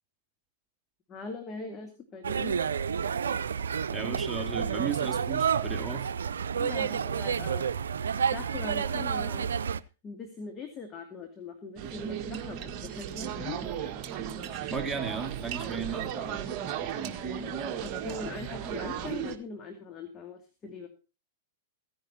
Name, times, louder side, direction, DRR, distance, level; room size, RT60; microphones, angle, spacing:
voice 1, 1.1-2.5 6.6-7.7 8.3-9.5 10.0-13.6 15.8-16.0 17.8-20.9, left 4 dB, 25° left, 4 dB, 2.5 m, -41 dB
sound 1, 2.2-9.8, right 7 dB, 80° right, 0.6 m, -30 dB
voice 2, 3.9-6.1 14.7-16.4 16.8-17.2, right 5 dB, 15° right, 3 dB, 2.3 m, -35 dB
sound 2, 11.8-19.4, right 9 dB, 40° right, 1.7 m, -35 dB
16.0 x 10.5 x 4.3 m, 0.33 s
hypercardioid pair, 115°, 0 cm